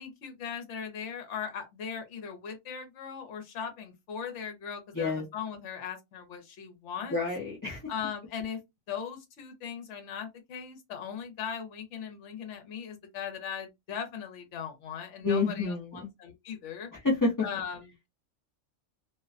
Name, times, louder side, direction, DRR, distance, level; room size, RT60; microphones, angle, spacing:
voice 1, 0.0-7.2 7.9-8.6 8.9-16.9 17.4-18.1, left 7 dB, 65° left, 1.0 m, -39 dB
voice 2, 7.1-7.8 15.2-16.1 16.9-17.3, left 3 dB, 20° left, 0.5 m, -28 dB
2.5 x 2.1 x 2.5 m
omnidirectional pair, 1.4 m